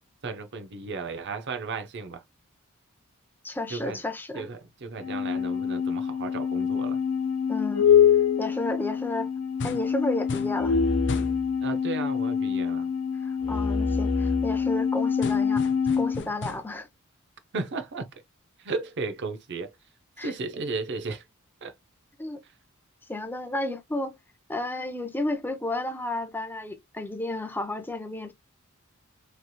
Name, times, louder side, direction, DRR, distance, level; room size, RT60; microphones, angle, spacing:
voice 1, 0.2-2.2 3.7-4.0 4.3-7.0 11.6-12.9 17.5-18.1 18.6-19.7 20.2-21.2 21.6-21.7, right 4 dB, 55° right, 0.6 m, -34 dB
voice 2, 3.4-4.5 7.5-7.9 8.4-9.3 9.6-10.8 13.2-15.6 16.0-16.9 20.2-20.3 22.2-22.4 23.1-24.2 24.5-28.3, left 2 dB, 10° left, 0.6 m, -32 dB
sound 1, 5.0-16.2, left 7 dB, 85° left, 0.9 m, -25 dB
sound 2, 9.6-10.0 10.3-10.6 11.1-11.4 15.2-16.8, left 3 dB, 55° left, 0.6 m, -36 dB
3.2 x 2.8 x 2.2 m
head